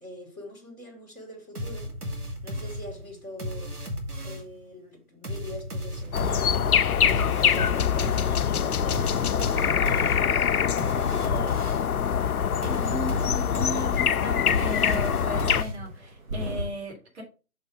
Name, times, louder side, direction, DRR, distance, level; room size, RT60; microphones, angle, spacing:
voice 1, 0.0-1.9 2.4-3.8 4.2-6.6 7.0-11.6 12.9-13.2, left 1 dB, 5° left, 1.0 m, -43 dB
sound 1, 1.6-4.6 5.2-12.0 12.6-16.1, equal, 80° right, 1.8 m, -35 dB
sound 2, 5.9-16.7, right 1 dB, 60° right, 2.1 m, -43 dB
sound 3, 6.1-15.6, left 8 dB, 75° left, 0.5 m, -24 dB
voice 2, 12.6-17.2, equal, 45° right, 3.1 m, -36 dB
6.1 x 4.2 x 4.9 m
figure-of-eight pair, 150°, 45 cm